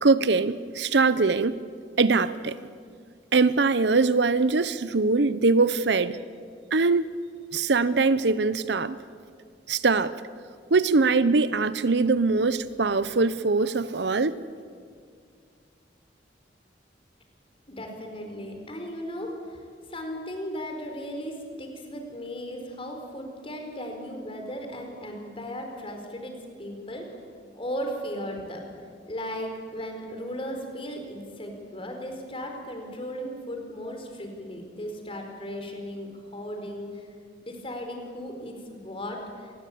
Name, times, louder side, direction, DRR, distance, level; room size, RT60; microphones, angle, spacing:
voice 1, 0.0-1.6 2.0-2.6 3.3-6.2 6.7-7.1 7.5-9.0 9.7-10.1 10.7-14.4, right 3 dB, 70° right, 0.8 m, -22 dB
voice 2, 17.7-19.6 19.9-27.1 27.5-28.6 29.1-37.1 37.4-39.5, equal, 30° left, 4.5 m, -36 dB
26.0 x 20.0 x 8.6 m
head